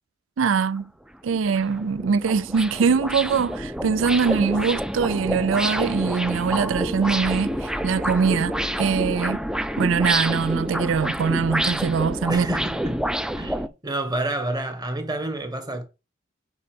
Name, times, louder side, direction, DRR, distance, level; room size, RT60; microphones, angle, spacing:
voice 1, 0.4-0.9 1.2-9.4 9.8-12.5, right 5 dB, 70° right, 0.4 m, -23 dB
sound 1, 0.8-0.9 1.3-13.7, equal, 5° right, 0.5 m, -28 dB
voice 2, 12.3-13.1 13.4-15.8, right 1 dB, 20° right, 1.6 m, -29 dB
6.9 x 5.3 x 5.2 m
head